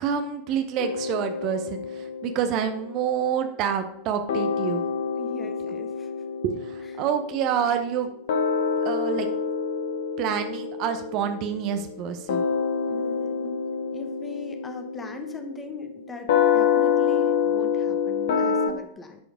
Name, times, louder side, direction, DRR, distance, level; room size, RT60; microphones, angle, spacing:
voice 1, 0.0-4.8 6.4-8.1 8.8-9.3 10.2-12.4, right 8 dB, 40° right, 7 dB, 0.9 m, -27 dB
sound 1, 0.8-4.0 4.3-18.7, left 6 dB, 55° left, 1.0 m, -27 dB
voice 2, 5.2-6.3 6.8-7.0 12.9-13.6 13.9-19.2, left 3 dB, 15° left, 6 dB, 1.3 m, -41 dB
10.5 x 5.0 x 5.0 m, 0.71 s
figure-of-eight pair, 90°, 0 cm